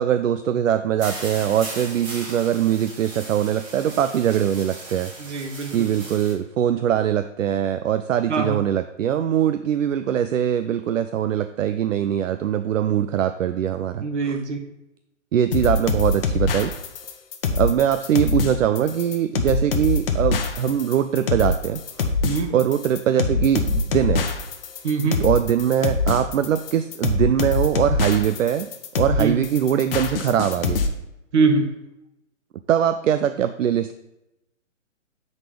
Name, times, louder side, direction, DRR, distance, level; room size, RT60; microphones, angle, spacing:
voice 1, 0.0-5.1 5.7-14.4 15.3-16.7 17.5-22.1 22.5-24.3 25.2-28.7 29.0-30.8 32.7-33.9, right 10 dB, 80° right, 10 dB, 0.5 m, -22 dB
sound 1, 1.0-6.3, right 2 dB, 25° right, 1.9 m, -37 dB
voice 2, 5.2-5.9 8.3-8.6 14.0-14.7 22.2-22.5 24.8-25.2 29.2-29.4 31.3-31.7, right 4 dB, 65° right, 5 dB, 1.3 m, -23 dB
sound 2, 15.5-30.9, left 4 dB, 45° left, 0.9 m, -24 dB
7.1 x 4.1 x 5.0 m, 0.90 s
hypercardioid pair, 145°, 38 cm